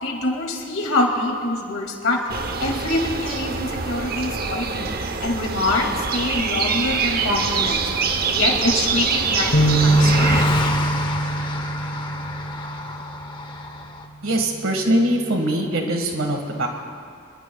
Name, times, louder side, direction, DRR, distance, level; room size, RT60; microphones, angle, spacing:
voice 1, 0.0-2.2 2.6-4.9 5.2-7.8 8.2-9.5 9.8-10.5, left 2 dB, 85° left, 1 dB, 2.3 m, -25 dB
sound 1, 2.3-10.4, right 5 dB, 45° right, 0.8 m, -25 dB
Car passing by, 7.2-14.1, left 2 dB, 25° left, 0.9 m, -30 dB
sound 2, 9.5-13.0, right 1 dB, 50° left, 0.9 m, -21 dB
voice 2, 14.2-16.7, right 1 dB, 80° right, 3 dB, 1.7 m, -22 dB
24.0 x 22.0 x 2.3 m, 2.3 s
head